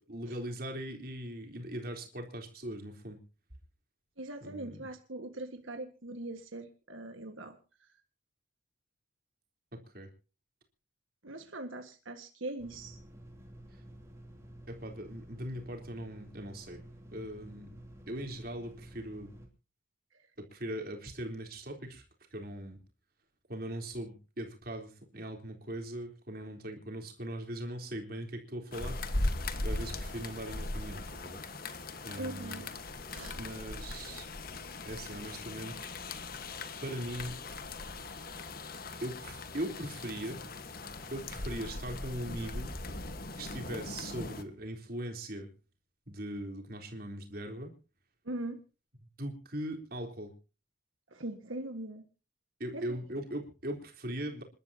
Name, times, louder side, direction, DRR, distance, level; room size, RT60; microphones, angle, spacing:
voice 1, 0.1-3.2 4.4-4.8 9.7-10.1 14.7-16.8 17.1-17.8 18.1-19.3 20.4-22.0 22.3-22.8 23.5-29.0 29.6-31.4 32.0-32.6 33.4-34.3 34.9-35.9 36.8-37.4 39.0-40.4 41.1-42.7 43.4-45.5 46.1-47.7 49.2-50.3 52.6-54.4, right 1 dB, 50° right, 3 dB, 3.7 m, -40 dB
voice 2, 4.2-7.9 11.2-13.0 20.1-20.3 32.2-32.7 33.1-33.4 48.2-48.6 51.1-52.0 52.7-52.9, right 2 dB, 85° right, 6 dB, 1.7 m, -41 dB
sound 1, 12.6-19.5, right 1 dB, 15° right, 3.0 m, -51 dB
sound 2, 28.7-44.4, left 2 dB, 50° left, 1.5 m, -39 dB
27.5 x 12.5 x 2.9 m, 0.34 s
head